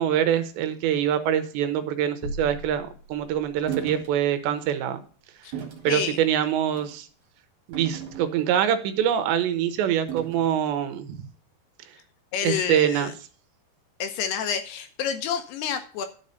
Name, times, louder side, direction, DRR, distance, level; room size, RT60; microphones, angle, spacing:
voice 1, 0.0-5.0 5.8-7.1 7.7-11.3 12.4-13.1, right 10 dB, 80° right, 9 dB, 3.1 m, -24 dB
sound 1, 2.2-3.8, equal, 50° left, 2.3 m, -38 dB
sound 2, 3.7-4.1 4.6-4.8 5.5-5.9 6.7-7.0 7.7-8.6 10.1-10.6, right 9 dB, 50° right, 2.8 m, -36 dB
voice 2, 5.9-6.2 12.3-13.1 14.0-16.1, left 8 dB, 75° left, 8 dB, 2.7 m, -29 dB
11.5 x 5.5 x 6.5 m, 0.40 s
omnidirectional pair, 5.2 m